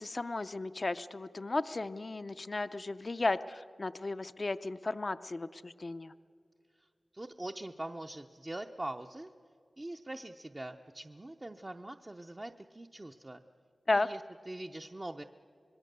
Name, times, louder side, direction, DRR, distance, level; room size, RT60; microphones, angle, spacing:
voice 1, 0.0-6.1 13.9-14.1, left 2 dB, 45° left, 12 dB, 0.5 m, -34 dB
voice 2, 7.1-9.3 9.8-13.4 13.9-15.2, right 1 dB, 25° right, 4 dB, 0.6 m, -43 dB
26.0 x 21.0 x 6.7 m, 2.3 s
wide cardioid pair, 95°, 0 cm